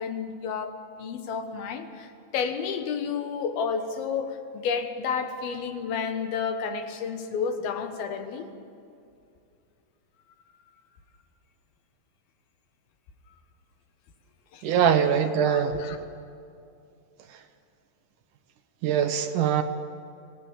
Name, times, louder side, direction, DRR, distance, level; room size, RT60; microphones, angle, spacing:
voice 1, 0.0-8.5 14.5-14.7 15.4-16.0, left 6 dB, 90° left, 6 dB, 3.3 m, -31 dB
voice 2, 14.6-15.8 18.8-19.6, right 8 dB, 70° right, 8 dB, 2.3 m, -22 dB
24.0 x 18.0 x 7.3 m, 2.5 s
omnidirectional pair, 4.2 m